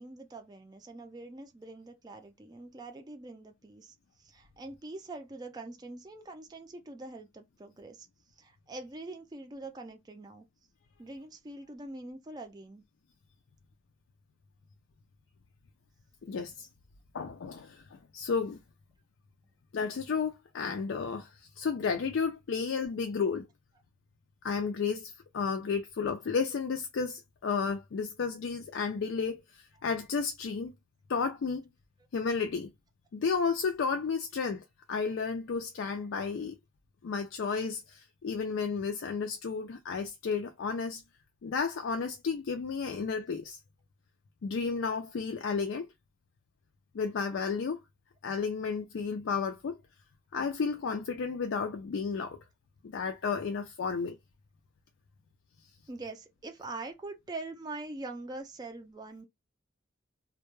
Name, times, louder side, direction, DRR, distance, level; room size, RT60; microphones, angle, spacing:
voice 1, 0.0-10.4 11.0-12.8 55.9-59.3, right 2 dB, 20° right, 0.4 m, -44 dB
voice 2, 16.3-16.7 17.1-17.8 18.1-18.6 19.7-21.3 21.6-23.5 24.4-29.4 29.8-30.7 31.1-31.7 32.1-32.7 33.1-34.6 34.9-36.5 37.0-41.0 41.4-43.6 44.4-45.9 46.9-47.8 48.2-49.8 50.3-52.4 52.8-54.2, left 5 dB, 65° left, 0.4 m, -32 dB
2.2 x 2.1 x 3.0 m
head